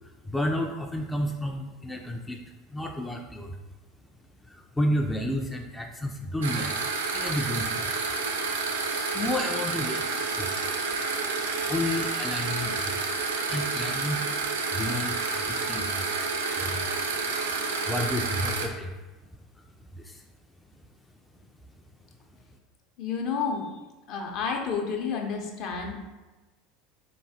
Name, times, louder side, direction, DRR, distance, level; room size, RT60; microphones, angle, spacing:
voice 1, 0.0-2.4 2.7-3.6 4.4-6.9 7.1-8.0 9.1-10.7 11.7-13.1 13.4-14.3 14.7-16.2 16.5-16.9 17.9-18.9 19.6-19.7 19.9-20.2, left 1 dB, 10° left, 2 dB, 0.3 m, -31 dB
sound 1, 6.4-18.7, right 4 dB, 70° right, 0.4 m, -29 dB
voice 2, 23.0-23.7 24.1-26.1, left 5 dB, 50° left, 1 dB, 0.6 m, -30 dB
3.5 x 3.0 x 2.7 m, 1.2 s
figure-of-eight pair, 75°, 0 cm